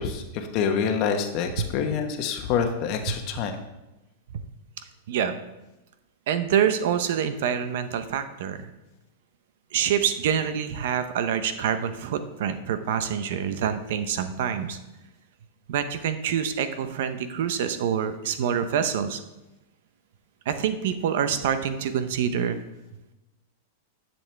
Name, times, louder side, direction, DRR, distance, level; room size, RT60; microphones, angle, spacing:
voice 1, 0.0-3.6, left 6 dB, 40° left, 5 dB, 1.2 m, -26 dB
voice 2, 6.3-8.7 9.7-14.8 15.7-19.2 20.5-22.6, right 8 dB, 65° right, 10 dB, 0.8 m, -26 dB
10.5 x 7.1 x 3.4 m, 0.98 s
supercardioid pair, 145°, 0 cm